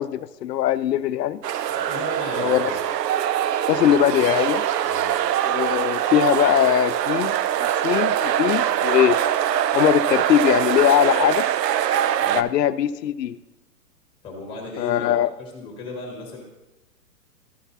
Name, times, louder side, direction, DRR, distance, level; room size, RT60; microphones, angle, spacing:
voice 1, 0.0-1.4 2.4-2.6 3.7-4.6 5.4-9.2 9.7-11.5 12.3-13.4 14.8-15.3, left 11 dB, 85° left, 14 dB, 0.6 m, -21 dB
sound 1, 1.4-12.4, right 11 dB, 85° right, 0.6 m, -23 dB
voice 2, 1.7-2.8 4.8-5.2 12.2-12.4 14.2-15.1 15.4-16.4, left 2 dB, 10° left, 0 dB, 1.5 m, -35 dB
Telephone, 2.3-5.4 5.8-5.9, right 3 dB, 70° right, 1.2 m, -38 dB
13.5 x 5.9 x 2.7 m, 1.0 s
hypercardioid pair, 165°, 48 cm